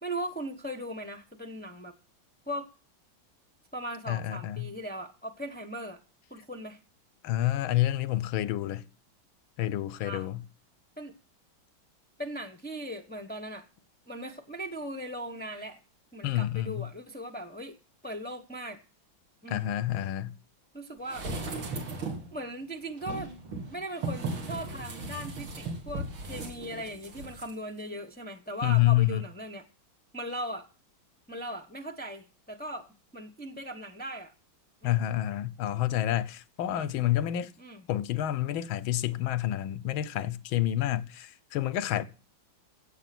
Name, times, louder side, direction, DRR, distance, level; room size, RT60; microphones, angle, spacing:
voice 1, 0.0-1.9 2.5-2.7 3.7-6.0 6.3-6.8 10.0-10.3 11.0-11.1 12.2-13.6 14.1-15.8 16.1-17.8 18.0-18.8 19.4-19.7 20.7-21.3 22.3-23.3 23.7-29.6 30.1-30.7 31.3-32.9 33.1-34.3 34.8-35.1 36.7-36.9 37.6-37.9, equal, 10° left, 0.6 m, -38 dB
voice 2, 4.1-4.7 7.2-8.8 9.6-10.4 16.2-16.8 19.5-20.3 28.6-29.2 34.8-37.5 37.9-42.0, left 13 dB, 90° left, 1.6 m, -28 dB
sound 1, 21.1-22.3 23.0-27.5 27.8-27.9, right 2 dB, 90° right, 3.1 m, -37 dB
16.0 x 7.5 x 6.0 m
omnidirectional pair, 2.1 m